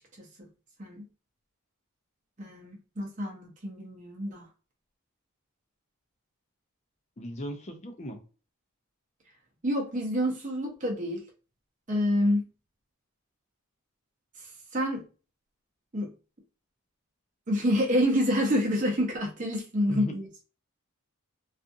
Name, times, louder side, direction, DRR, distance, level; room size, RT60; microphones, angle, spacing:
voice 1, 0.2-0.5 0.8-1.1 2.4-4.4 9.6-11.2 11.9-12.5 14.4-15.1 15.9-16.1 17.5-20.4, equal, 35° right, 0.7 m, -28 dB
voice 2, 7.2-8.2 19.9-20.1, equal, 30° left, 0.5 m, -37 dB
2.4 x 2.4 x 2.5 m
head